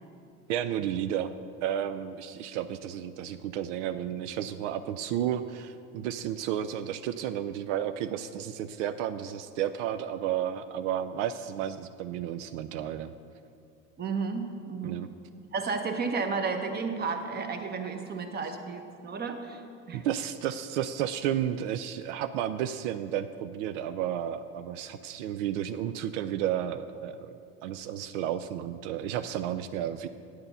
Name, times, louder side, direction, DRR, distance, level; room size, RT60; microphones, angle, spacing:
voice 1, 0.5-1.3 1.6-13.1 14.8-15.1 19.9-27.3 27.6-30.1, right 10 dB, 80° right, 11 dB, 0.5 m, -32 dB
voice 2, 14.0-15.0 15.5-19.6 19.9-20.0, right 4 dB, 25° right, 6 dB, 1.0 m, -32 dB
9.4 x 6.6 x 5.5 m, 2.5 s
supercardioid pair, 105°, 36 cm